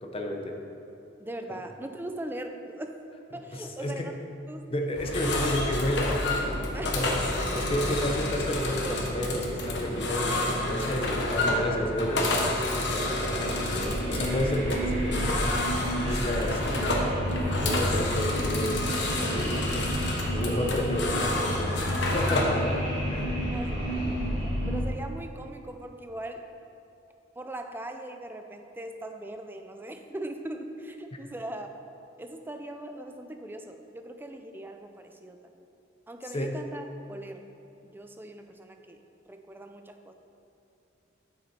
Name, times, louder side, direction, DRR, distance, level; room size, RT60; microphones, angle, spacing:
voice 1, 0.0-0.6 1.5-1.6 3.5-4.1 4.7-6.2 6.9-7.1 7.5-12.4 12.8-15.6 16.0-23.4 36.3-36.5, left 1 dB, 30° left, 2 dB, 0.8 m, -31 dB
voice 2, 1.2-3.0 3.3-4.2 4.5-4.7 5.3-5.4 6.7-7.0 7.3-7.6 23.5-26.5 27.4-31.7 32.2-35.6 36.1-37.4 37.9-39.0 39.3-40.1, right 1 dB, 10° right, 5 dB, 0.4 m, -40 dB
sound 1, 4.9-24.8, equal, 75° right, 2.0 m, -31 dB
sound 2, 5.0-22.6, left 2 dB, 65° left, 1.2 m, -30 dB
sound 3, 8.6-9.4 10.2-10.9 11.3-11.6 12.4-12.8 13.6-13.8 14.7-15.0, left 2 dB, 85° left, 0.9 m, -47 dB
9.1 x 7.3 x 4.2 m, 2.9 s
head